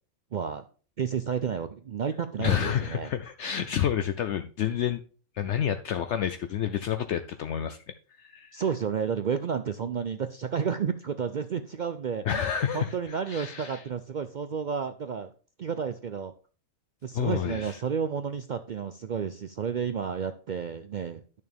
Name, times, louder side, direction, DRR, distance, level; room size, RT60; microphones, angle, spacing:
voice 1, 0.3-0.6 1.0-3.1 8.5-12.4 12.7-15.3 15.6-16.3 17.0-21.4, right 7 dB, 70° right, 0.4 m, -31 dB
voice 2, 2.4-5.0 5.4-7.8 8.2-8.6 12.2-13.8 17.1-17.8, left 9 dB, 65° left, 0.8 m, -29 dB
11.0 x 6.5 x 3.4 m
omnidirectional pair, 1.4 m